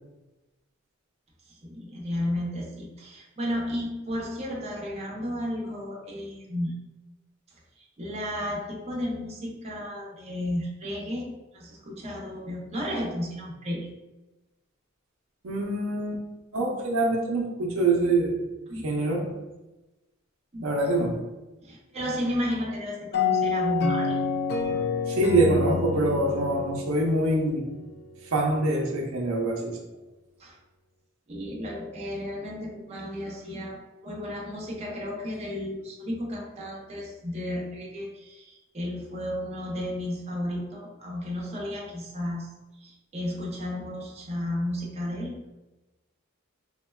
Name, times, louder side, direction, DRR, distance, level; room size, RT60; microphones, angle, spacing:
voice 1, 1.5-6.8 7.5-13.9 18.7-18.9 20.5-21.0 21.6-24.2 24.7-24.8 26.5-26.7 30.4-30.6 31.3-42.5 42.8-45.5, left 1 dB, 30° right, -3 dB, 0.6 m, -33 dB
voice 2, 15.4-16.2 16.5-18.5 18.8-19.4 20.6-21.2 25.1-27.7 28.3-29.8, right 2 dB, 80° right, -1 dB, 0.5 m, -25 dB
sound 1, 23.1-27.8, left 4 dB, 50° left, 0.4 m, -28 dB
3.5 x 2.1 x 2.2 m, 1.1 s
head